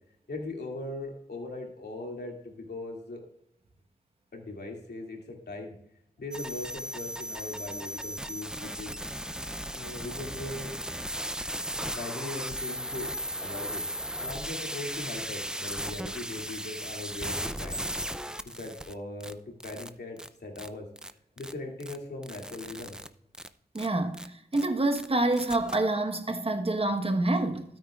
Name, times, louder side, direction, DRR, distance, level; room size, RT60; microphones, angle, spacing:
voice 1, 0.3-3.2 4.3-5.8 6.2-9.0 9.7-10.7 11.9-13.1 13.4-13.8 14.2-18.1 18.5-20.9 21.4-23.0, left 2 dB, 70° left, 2.4 m, -39 dB
sound 1, 6.3-18.9 19.2-19.3 19.6-19.9 20.2-20.3 20.6-20.7 21.0-21.1 21.4-21.5 21.8-22.0 22.2-23.1 23.3-23.5 23.8-23.9 24.1-24.3 24.5-24.7 24.9-25.1 25.3-25.8, equal, 5° right, 0.5 m, -36 dB
voice 2, 23.7-27.6, right 2 dB, 35° right, 1.2 m, -27 dB
13.5 x 8.9 x 2.4 m
wide cardioid pair, 85°, 18 cm